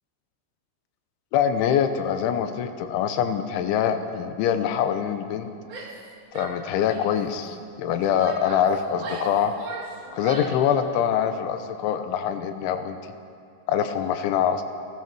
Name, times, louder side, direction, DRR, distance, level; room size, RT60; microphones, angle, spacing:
voice 1, 1.3-5.5 6.3-9.6 10.1-13.0 13.7-14.6, left 8 dB, 80° left, 9 dB, 3.3 m, -24 dB
Female speech woman speaking / Yell, 5.6-6.1 6.3-7.2 7.8-10.7, right 3 dB, 45° right, 2.5 m, -38 dB
29.0 x 15.0 x 6.2 m, 2.4 s
omnidirectional pair, 5.5 m